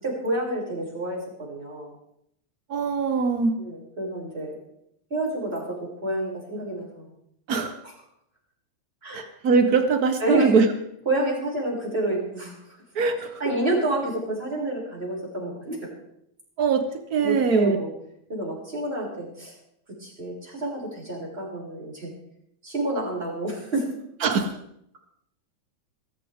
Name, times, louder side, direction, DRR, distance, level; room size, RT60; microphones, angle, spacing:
voice 1, 0.0-1.9 3.6-4.6 5.1-7.1 9.0-9.2 9.6-9.7 10.2-10.5 11.0-12.5 13.4-15.8 17.2-17.9 18.3-19.5 20.0-22.1 22.6-23.9, right 1 dB, 20° right, -5 dB, 6.7 m, -28 dB
voice 2, 2.7-3.6 7.5-7.8 9.1-10.7 12.9-13.3 16.6-16.8 17.1-17.8 24.2-24.5, right 5 dB, 75° right, 8 dB, 0.8 m, -22 dB
22.0 x 13.5 x 3.6 m, 0.75 s
omnidirectional pair, 3.3 m